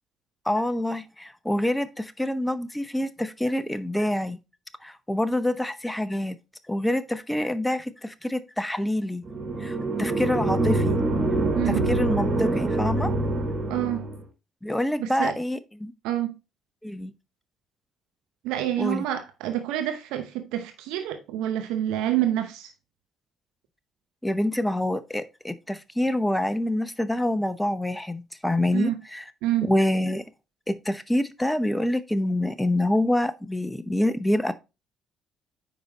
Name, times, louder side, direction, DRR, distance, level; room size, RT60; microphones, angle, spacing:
voice 1, 0.4-4.4 4.8-6.4 6.7-9.2 9.6-11.0 11.7-13.1 14.6-15.9 16.8-17.1 18.8-19.0 24.2-29.3 29.6-30.2 30.7-34.5, left 1 dB, 10° left, 0.8 m, -26 dB
sound 1, 9.2-14.2, right 2 dB, 45° right, 3.6 m, -25 dB
voice 2, 13.7-14.1 15.0-15.4 16.0-16.3 18.4-22.7 28.7-29.0 29.4-29.7, right 12 dB, 70° right, 0.8 m, -27 dB
9.0 x 5.1 x 2.9 m
hypercardioid pair, 50°, 0 cm